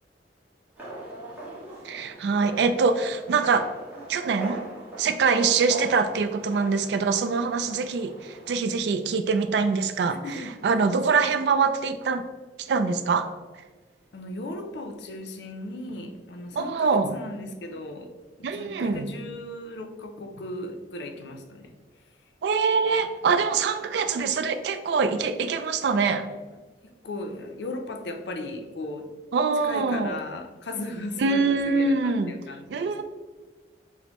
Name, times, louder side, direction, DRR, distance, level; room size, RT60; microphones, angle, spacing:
sound 1, 0.8-8.6, right 2 dB, 10° right, 0.8 m, -41 dB
voice 1, 1.8-3.7 4.1-4.7 5.0-10.2 10.6-12.2 12.6-13.3 16.6-17.2 18.4-19.1 22.4-26.3 29.3-30.2 31.2-32.3 32.7-33.0, right 4 dB, 70° right, 9 dB, 0.3 m, -24 dB
voice 2, 10.1-10.8 11.1-11.3 14.1-18.1 18.4-21.7 26.8-29.1 29.6-33.0, left 2 dB, 70° left, 5 dB, 0.5 m, -37 dB
6.0 x 2.0 x 2.9 m, 1.3 s
head